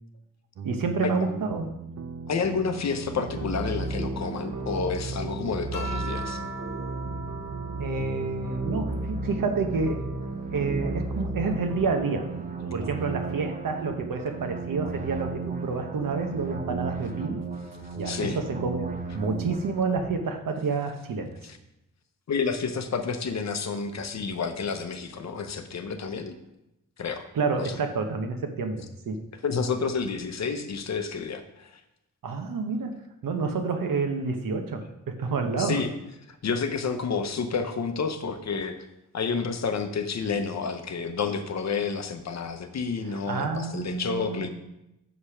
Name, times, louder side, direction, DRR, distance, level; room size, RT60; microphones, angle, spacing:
sound 1, 0.6-13.9, right 5 dB, 60° right, 0.6 m, -40 dB
voice 1, 0.6-1.7 7.8-10.0 10.5-12.3 12.7-17.5 18.0-21.4 27.3-29.3 32.2-35.8 43.1-44.5, right 4 dB, 85° right, 5 dB, 1.0 m, -29 dB
voice 2, 2.3-6.4 18.0-18.4 21.4-21.6 22.3-26.3 27.0-27.3 27.6-27.8 29.4-31.8 35.6-35.9 36.3-38.8 39.1-44.5, left 5 dB, 55° left, 7 dB, 0.8 m, -30 dB
sound 2, 3.1-20.1, right 3 dB, 25° right, 0.8 m, -35 dB
sound 3, 5.7-10.5 11.0-12.7 13.9-14.4, right 3 dB, 70° left, 1.3 m, -43 dB
6.8 x 5.0 x 5.7 m, 0.88 s
wide cardioid pair, 180°, 33 cm